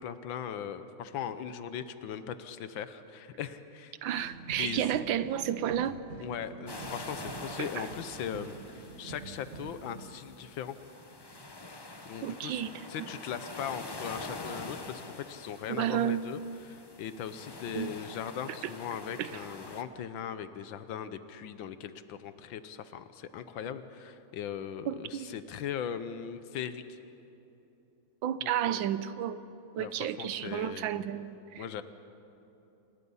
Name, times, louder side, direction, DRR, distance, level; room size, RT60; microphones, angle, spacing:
voice 1, 0.0-3.9 4.6-4.9 6.2-10.8 12.1-12.6 12.9-16.4 16.7-27.0 28.4-28.9 29.8-31.0 31.6-31.8, left 8 dB, 70° left, 12 dB, 1.5 m, -39 dB
voice 2, 4.0-6.0 7.6-7.9 12.2-13.1 15.7-16.2 17.7-17.9 19.2-19.3 24.8-25.4 28.2-29.4 29.7-31.6, right 10 dB, 75° right, 14 dB, 1.4 m, -32 dB
sound 1, 4.2-10.2, right 5 dB, 45° right, 1.0 m, -47 dB
sound 2, 6.7-19.8, left 2 dB, 30° left, 0.4 m, -45 dB
27.0 x 20.0 x 5.5 m, 3.0 s
omnidirectional pair, 2.2 m